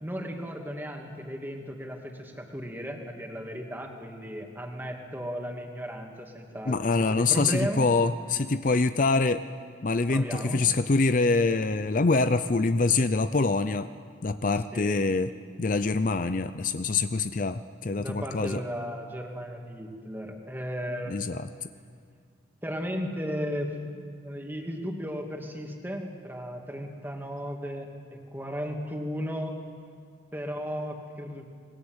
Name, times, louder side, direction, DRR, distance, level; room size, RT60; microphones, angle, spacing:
voice 1, 0.0-7.8 10.1-10.6 14.7-15.0 18.0-21.2 22.6-23.7 24.2-29.6 30.3-31.4, equal, 10° right, 1 dB, 2.6 m, -35 dB
voice 2, 6.7-9.4 9.8-13.9 14.2-15.3 15.6-18.6 21.1-21.5, left 3 dB, 45° left, 11 dB, 0.5 m, -25 dB
28.0 x 21.0 x 8.0 m, 2.1 s
head